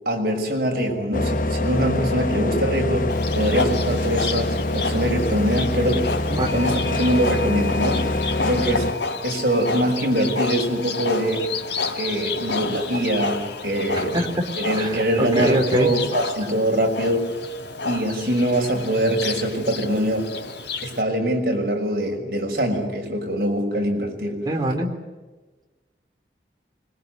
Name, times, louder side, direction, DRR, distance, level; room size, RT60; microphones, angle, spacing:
voice 1, 0.0-6.1 6.5-8.1 8.4-9.0 9.2-11.4 12.0-14.2 14.6-17.4 17.8-20.3 20.8-24.5, right 1 dB, 55° right, 2 dB, 6.2 m, -23 dB
sound 1, 1.1-8.9, left 2 dB, 50° left, 1.1 m, -25 dB
Livestock farm animals working animals, 3.1-21.0, left 4 dB, 90° left, 3.3 m, -30 dB
sound 2, 6.5-17.1, left 5 dB, 20° left, 7.1 m, -39 dB
voice 2, 14.0-14.4 14.7-15.9 24.5-24.9, right 1 dB, 25° right, 2 dB, 3.4 m, -23 dB
25.5 x 23.0 x 9.5 m, 1.2 s
head